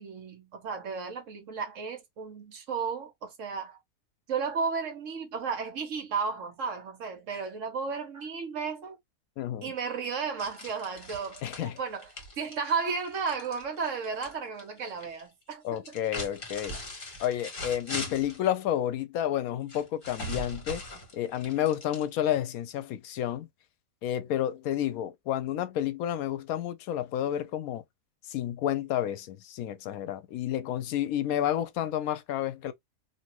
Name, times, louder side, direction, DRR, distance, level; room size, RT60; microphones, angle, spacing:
voice 1, 0.0-3.8 4.3-9.0 9.6-15.6, right 5 dB, 65° right, 1.2 m, -34 dB
voice 2, 9.4-9.7 11.4-11.7 15.6-16.8 17.2-20.8 21.1-23.5 24.0-27.8 28.3-32.7, left 11 dB, 80° left, 1.0 m, -30 dB
sound 1, 10.4-14.3 14.6-15.2 15.8-18.4 19.7-22.4, left 1 dB, 40° left, 1.5 m, -40 dB
2.8 x 2.8 x 3.0 m
omnidirectional pair, 1.5 m